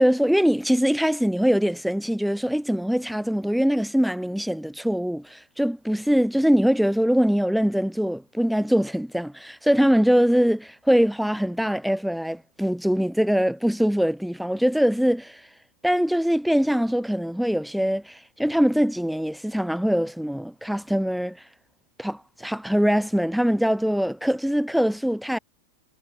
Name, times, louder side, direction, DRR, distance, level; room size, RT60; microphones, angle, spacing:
voice 1, 0.0-15.4 15.8-21.4 22.0-25.4, equal, ahead, 3.6 m, -22 dB
figure-of-eight pair, 90°, 0 cm